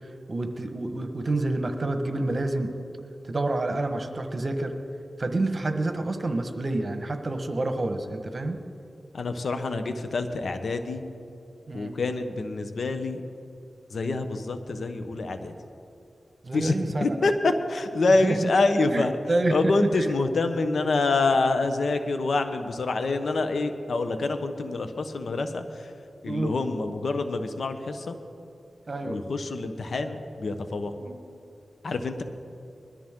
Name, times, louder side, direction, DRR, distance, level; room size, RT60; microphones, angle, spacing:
voice 1, 0.3-2.7 3.2-4.7 5.2-8.6 11.7-12.0 16.4-17.3 18.2-18.5 18.9-20.1 26.2-26.5 28.9-29.2 30.9-31.2, right 2 dB, 50° right, 6 dB, 1.4 m, -28 dB
voice 2, 9.1-11.0 11.7-13.2 13.9-15.5 16.5-16.7 17.0-19.2 19.5-25.9 26.2-28.2 29.0-30.9 31.8-32.2, left 3 dB, 80° left, 8 dB, 1.0 m, -26 dB
21.0 x 13.0 x 3.8 m, 2.6 s
cardioid pair, 45°, 0 cm